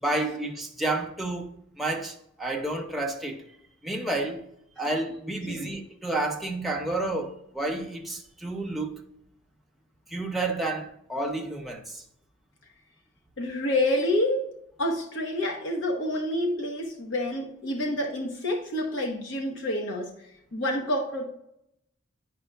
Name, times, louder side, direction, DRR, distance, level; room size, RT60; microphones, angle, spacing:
voice 1, 0.0-3.4 3.8-4.4 4.8-9.0 10.1-12.0, right 2 dB, ahead, 0.7 m, -30 dB
voice 2, 13.4-20.1 20.5-21.2, left 1 dB, 70° left, 1.0 m, -28 dB
10.0 x 5.3 x 2.3 m
head